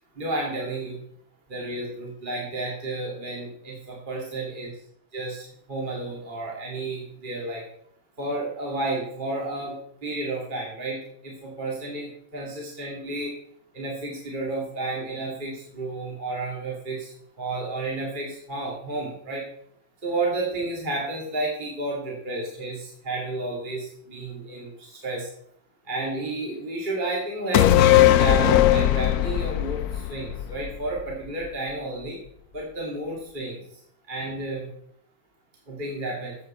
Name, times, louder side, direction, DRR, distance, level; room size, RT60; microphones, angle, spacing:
voice 1, 0.1-1.0 1.5-4.7 5.1-7.6 8.2-13.3 13.7-19.4 20.0-25.3 25.8-32.2 32.5-33.6 34.1-34.7 35.7-36.4, right 2 dB, 25° right, -3 dB, 2.5 m, -31 dB
sound 1, 27.5-31.1 31.4-31.5, left 13 dB, 80° left, 0.8 m, -19 dB
15.0 x 7.9 x 4.4 m, 0.67 s
omnidirectional pair, 2.2 m